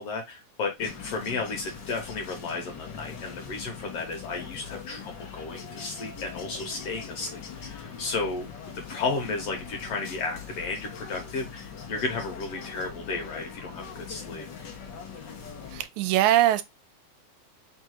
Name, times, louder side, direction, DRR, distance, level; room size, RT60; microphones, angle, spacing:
voice 1, 0.0-14.5, left 3 dB, 65° left, 1.7 m, -33 dB
sound 1, 0.8-15.8, left 6 dB, 80° left, 0.9 m, -41 dB
voice 2, 15.7-16.6, right 13 dB, 85° right, 1.9 m, -22 dB
4.7 x 2.5 x 4.5 m
omnidirectional pair, 3.4 m